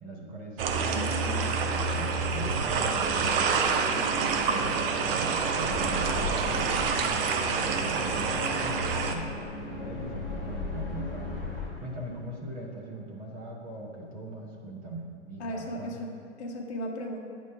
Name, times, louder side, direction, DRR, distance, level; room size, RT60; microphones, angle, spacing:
voice 1, 0.0-3.5 4.1-6.9 7.4-9.3 9.7-16.0, right 2 dB, 25° right, -1 dB, 0.9 m, -40 dB
sound 1, 0.6-9.2, right 5 dB, 50° right, 0.7 m, -27 dB
sound 2, 1.6-13.1, equal, 50° left, 1.2 m, -42 dB
sound 3, 5.6-11.7, left 3 dB, ahead, 0.3 m, -37 dB
voice 2, 15.4-17.2, equal, 65° left, 2 dB, 1.1 m, -36 dB
8.6 x 3.1 x 5.5 m, 2.3 s
hypercardioid pair, 135°, 36 cm